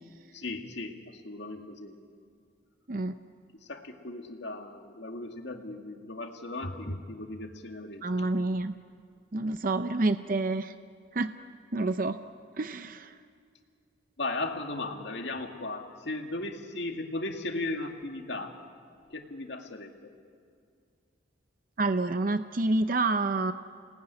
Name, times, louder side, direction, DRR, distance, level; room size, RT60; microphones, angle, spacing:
voice 1, 0.3-2.0 3.6-8.1 14.2-18.6 19.1-20.1, left 2 dB, 60° left, 4 dB, 2.2 m, -36 dB
voice 2, 8.0-8.7 9.3-10.7 11.1-11.3 11.7-12.2 12.6-13.1 21.8-23.5, right 2 dB, 45° right, 10 dB, 0.6 m, -28 dB
28.0 x 19.5 x 9.8 m, 2.2 s
head